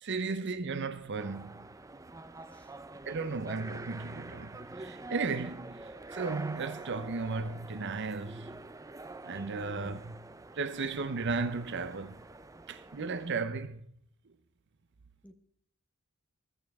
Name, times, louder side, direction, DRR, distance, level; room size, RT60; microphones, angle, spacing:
voice 1, 0.0-1.6 3.1-8.6 9.2-10.2 10.6-12.2 12.7-13.8, right 4 dB, 55° right, 0.7 m, -35 dB
sound 1, 1.2-13.4, right 3 dB, 15° right, 0.5 m, -46 dB
voice 2, 2.5-3.4 9.7-10.0 15.2-15.3, equal, 5° left, 1.2 m, -55 dB
14.0 x 14.0 x 3.5 m
head